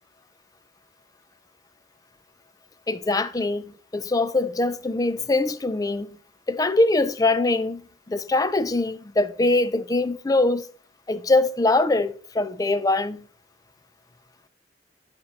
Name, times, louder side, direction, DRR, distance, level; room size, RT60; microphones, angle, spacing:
voice 1, 2.9-6.2 6.5-7.8 8.1-10.6 11.1-13.2, left 2 dB, 20° left, 0.4 m, -23 dB
10.5 x 4.4 x 5.2 m
head